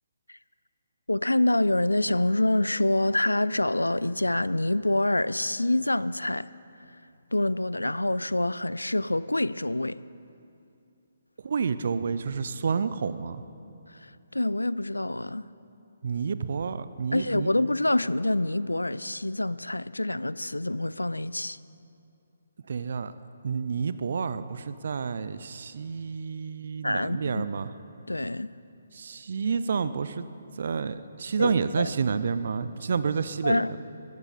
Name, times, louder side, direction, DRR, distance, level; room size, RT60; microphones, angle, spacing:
voice 1, 1.1-6.5 7.3-10.0 13.9-15.5 17.1-21.6 26.8-27.4 28.1-28.5 31.4-31.9 33.4-33.7, left 1 dB, 85° left, 0.4 m, -26 dB
voice 2, 11.4-13.4 16.0-17.5 22.7-23.1 23.4-27.7 28.9-30.3 30.6-33.8, right 5 dB, 55° right, 0.6 m, -29 dB
22.0 x 13.5 x 4.2 m
figure-of-eight pair, 140°, 0 cm